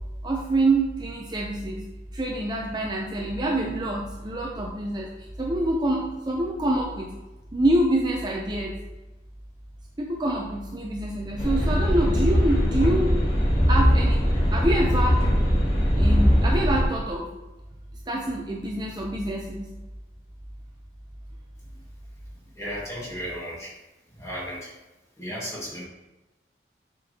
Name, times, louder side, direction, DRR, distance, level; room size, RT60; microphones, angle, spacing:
voice 1, 0.2-1.9 2.1-7.1 7.5-8.8 10.0-13.1 13.7-14.2 14.5-15.3 16.0-17.3 18.1-19.7, right 1 dB, 25° right, -1 dB, 0.5 m, -26 dB
sound 1, 11.4-16.8, equal, 35° left, 1.6 m, -21 dB
voice 2, 22.6-23.7 24.2-24.7 25.2-25.8, equal, 15° left, -6 dB, 1.7 m, -34 dB
6.6 x 5.1 x 2.8 m, 1.0 s
head